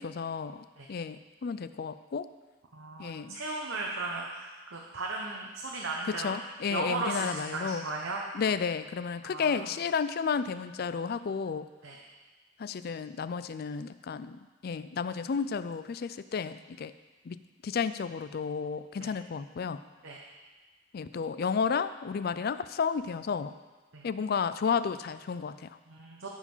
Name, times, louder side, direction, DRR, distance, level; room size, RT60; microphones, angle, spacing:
voice 1, 0.0-2.3 3.0-3.4 6.1-7.9 8.3-11.7 12.6-16.9 17.2-19.8 20.9-23.5 24.0-25.8, left 6 dB, 50° left, 13 dB, 0.4 m, -32 dB
voice 2, 2.7-6.4 6.7-8.2 9.2-9.7 11.8-12.0 19.0-19.1 20.0-20.2 23.9-24.1 25.9-26.3, right 3 dB, 85° right, -2 dB, 1.0 m, -36 dB
13.5 x 4.9 x 5.5 m, 1.3 s
head